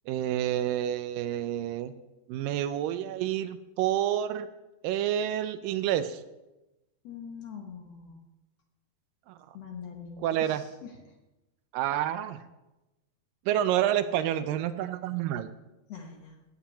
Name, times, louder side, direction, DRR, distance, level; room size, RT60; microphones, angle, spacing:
voice 1, 0.1-1.9 2.3-4.5 4.8-6.2 9.3-9.6 10.2-10.6 11.7-12.4 13.5-15.5, right 11 dB, 80° right, 12 dB, 2.2 m, -29 dB
voice 2, 7.0-8.2 9.5-11.2 15.9-16.4, left 6 dB, 60° left, 2 dB, 1.9 m, -43 dB
15.5 x 5.8 x 8.7 m, 1.0 s
omnidirectional pair, 4.2 m